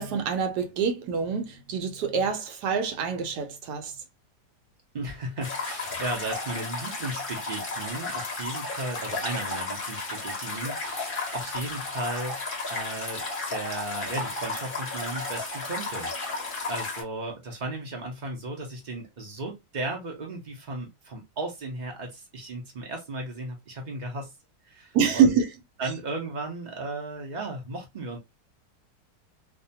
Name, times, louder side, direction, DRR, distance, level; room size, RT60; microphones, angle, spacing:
voice 1, 0.0-3.9 24.9-25.5, right 6 dB, 75° right, 1.2 m, -25 dB
voice 2, 4.9-12.4 12.7-24.3 24.6-25.4 25.8-28.2, right 2 dB, 55° right, 0.5 m, -35 dB
sound 1, 5.4-17.0, left 3 dB, 40° left, 0.8 m, -33 dB
2.7 x 2.2 x 2.6 m
omnidirectional pair, 1.8 m